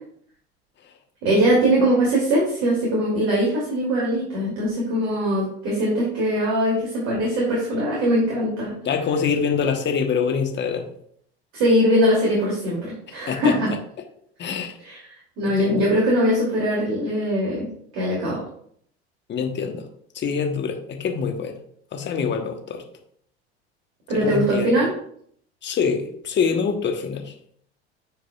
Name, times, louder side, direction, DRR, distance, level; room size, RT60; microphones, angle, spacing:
voice 1, 1.2-8.8 11.5-13.7 14.8-15.0 15.4-17.7 17.9-18.4 24.1-24.9, equal, 55° right, -4 dB, 2.9 m, -21 dB
voice 2, 8.8-10.9 13.3-13.6 14.4-14.7 15.4-15.8 19.3-19.9 20.1-21.6 21.9-22.8 24.1-24.7 25.6-27.3, left 6 dB, 35° left, 4 dB, 1.3 m, -25 dB
9.4 x 4.8 x 2.4 m, 0.64 s
hypercardioid pair, 75°, 33 cm